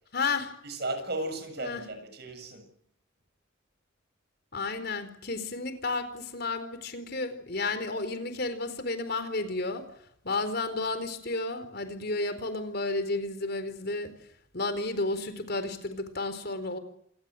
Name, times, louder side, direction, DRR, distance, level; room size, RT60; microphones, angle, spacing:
voice 1, 0.1-0.5 1.6-1.8 4.5-9.9 10.2-14.1 14.5-16.8, left 3 dB, 55° left, 10 dB, 4.4 m, -32 dB
voice 2, 0.6-2.7, right 2 dB, 55° right, 8 dB, 7.7 m, -35 dB
28.0 x 19.5 x 7.8 m, 0.72 s
head